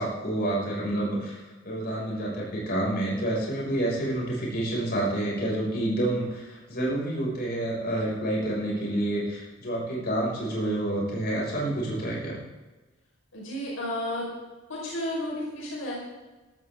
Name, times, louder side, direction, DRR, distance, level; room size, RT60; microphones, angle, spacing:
voice 1, 0.0-12.4, right 1 dB, 50° left, -3 dB, 6.1 m, -28 dB
voice 2, 13.3-14.3 14.7-16.0, left 1 dB, 80° left, -4 dB, 5.0 m, -32 dB
17.0 x 14.0 x 3.7 m, 1.2 s
head